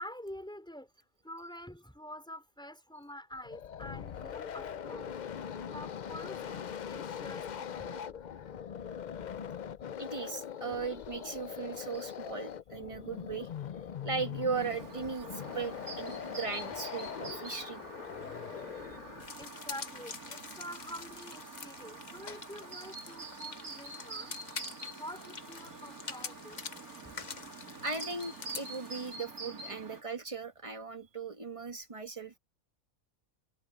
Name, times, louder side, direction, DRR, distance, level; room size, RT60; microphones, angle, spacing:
voice 1, 0.0-5.2 5.6-8.3 10.7-10.8 19.4-24.3 24.9-26.6 27.0-27.5, equal, 5° left, 4.5 m, -47 dB
sound 1, 3.3-19.4, left 8 dB, 65° left, 0.4 m, -41 dB
voice 2, 10.0-13.5 14.0-17.8 27.8-32.4, right 4 dB, 20° right, 1.6 m, -38 dB
Chirp tweet, 14.5-30.0, right 3 dB, 85° right, 3.3 m, -47 dB
sound 2, 19.2-29.2, left 5 dB, 35° left, 1.0 m, -46 dB
open air
omnidirectional pair, 1.5 m